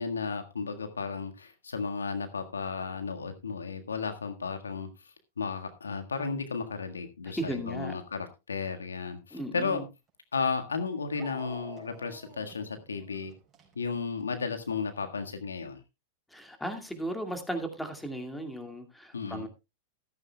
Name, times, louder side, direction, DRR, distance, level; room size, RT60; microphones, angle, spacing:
voice 1, 0.0-4.9 5.4-9.8 10.3-13.3 13.7-15.8 19.1-19.5, left 5 dB, 90° left, 7 dB, 1.6 m, -34 dB
voice 2, 7.4-8.0 9.3-9.8 16.3-19.5, right 1 dB, 5° left, 6 dB, 2.3 m, -36 dB
Dog, 10.1-10.2 11.2-14.6, right 4 dB, 25° right, 4.7 m, -49 dB
14.0 x 13.5 x 2.3 m, 0.25 s
hypercardioid pair, 105°, 0 cm